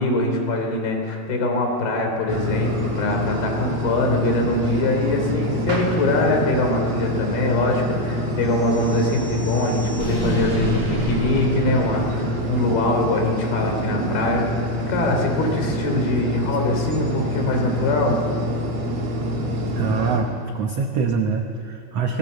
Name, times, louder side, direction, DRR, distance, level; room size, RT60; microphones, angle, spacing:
voice 1, 0.0-14.5 14.9-18.2, left 2 dB, 80° left, 3 dB, 5.1 m, -23 dB
sound 1, 2.3-20.2, equal, 45° right, 4.0 m, -26 dB
sound 2, 8.4-12.7, equal, 15° left, 7.6 m, -31 dB
voice 2, 19.4-22.2, right 5 dB, 75° right, 4 dB, 1.4 m, -24 dB
25.0 x 19.0 x 8.0 m, 2.4 s
omnidirectional pair, 4.3 m